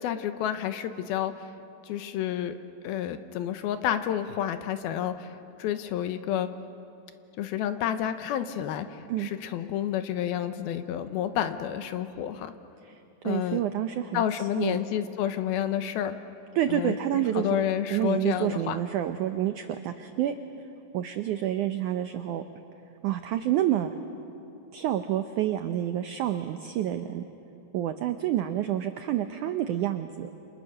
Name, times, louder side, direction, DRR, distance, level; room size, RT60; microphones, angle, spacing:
voice 1, 0.0-1.3 1.8-2.6 2.8-5.3 5.6-6.5 7.4-12.5 13.2-13.6 14.1-16.2 16.7-18.8, left 10 dB, 80° left, 10 dB, 2.7 m, -30 dB
voice 2, 13.2-14.2 14.6-14.8 16.6-17.5 17.9-20.3 20.9-22.4 23.0-23.9 24.7-27.2 27.7-30.3, right 12 dB, 85° right, 8 dB, 1.7 m, -28 dB
29.5 x 27.0 x 6.6 m, 2.7 s
omnidirectional pair, 4.6 m